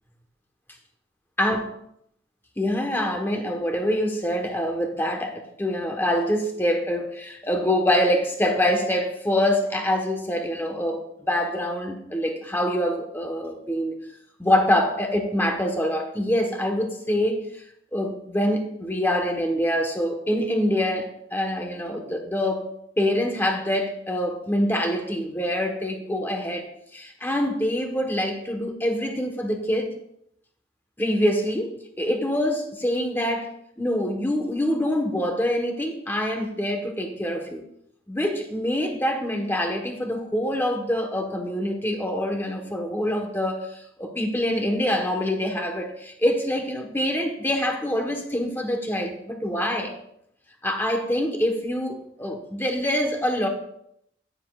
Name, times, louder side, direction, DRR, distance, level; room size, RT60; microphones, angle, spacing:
voice 1, 2.6-14.0 14.4-17.4 17.9-30.0 31.0-33.5 33.8-37.6 38.1-49.9 50.6-53.5, left 1 dB, 10° left, 3 dB, 1.1 m, -25 dB
14.5 x 9.7 x 2.4 m, 0.74 s
head